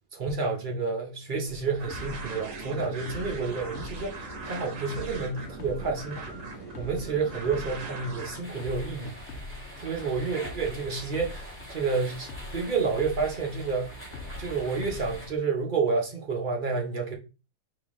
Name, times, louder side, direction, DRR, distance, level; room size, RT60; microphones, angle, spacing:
voice 1, 0.1-6.4 6.8-9.2 9.8-13.9 14.4-17.1, right 4 dB, 40° right, 0.8 m, -30 dB
sound 1, 1.5-15.4, left 3 dB, 65° left, 0.7 m, -44 dB
sound 2, 1.8-8.4, right 3 dB, 55° right, 1.3 m, -40 dB
sound 3, 8.4-15.3, right 1 dB, 10° left, 1.8 m, -44 dB
3.8 x 2.8 x 3.6 m
omnidirectional pair, 1.7 m